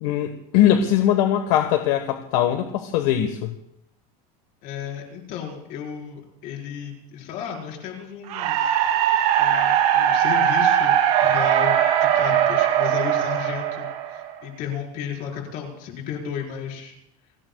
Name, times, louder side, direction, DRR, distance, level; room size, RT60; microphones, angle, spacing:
voice 1, 0.0-3.5, left 11 dB, 70° left, 5 dB, 1.4 m, -21 dB
voice 2, 4.6-9.0 9.4-16.9, left 8 dB, 45° left, 0 dB, 4.9 m, -34 dB
sound 1, 8.3-14.4, right 10 dB, 80° right, 2.6 m, -20 dB
29.5 x 18.5 x 2.4 m, 0.81 s
cardioid pair, 165°, 19 cm